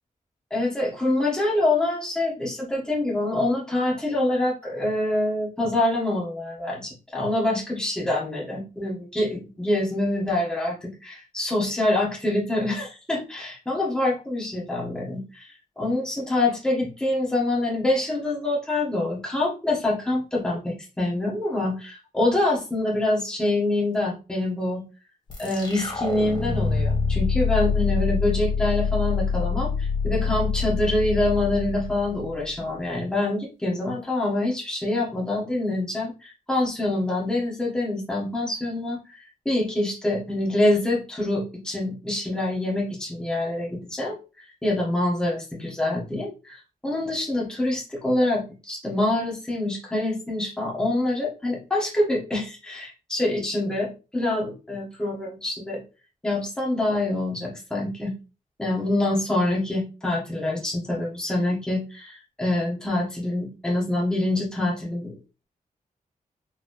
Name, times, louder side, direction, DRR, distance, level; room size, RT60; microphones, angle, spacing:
voice 1, 0.5-24.8 25.4-55.8 56.2-58.1 58.6-65.1, left 1 dB, 5° left, -4 dB, 1.2 m, -26 dB
sound 1, 25.3-32.6, left 5 dB, 35° left, 1.6 m, -25 dB
4.4 x 3.0 x 3.1 m, 0.32 s
wide cardioid pair, 180°, 14 cm